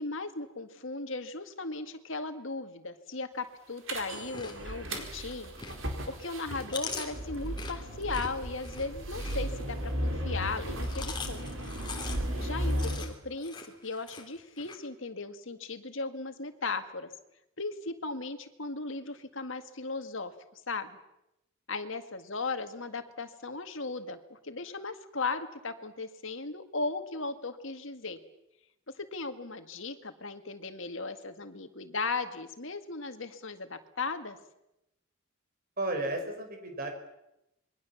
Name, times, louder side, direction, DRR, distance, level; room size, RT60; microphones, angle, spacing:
voice 1, 0.0-5.5 6.1-11.7 12.4-13.5 13.8-17.1 17.6-21.0 21.7-28.2 29.0-34.4, left 3 dB, 60° left, 8 dB, 2.0 m, -37 dB
sound 1, 3.9-13.0, equal, 65° right, 4.5 m, -35 dB
Chewing mastication, 4.1-6.0 6.4-9.9 10.6-14.7, left 4 dB, 20° left, 2.9 m, -42 dB
voice 2, 35.8-36.9, right 2 dB, 45° right, 5 dB, 5.5 m, -33 dB
27.0 x 22.5 x 7.2 m, 0.87 s
head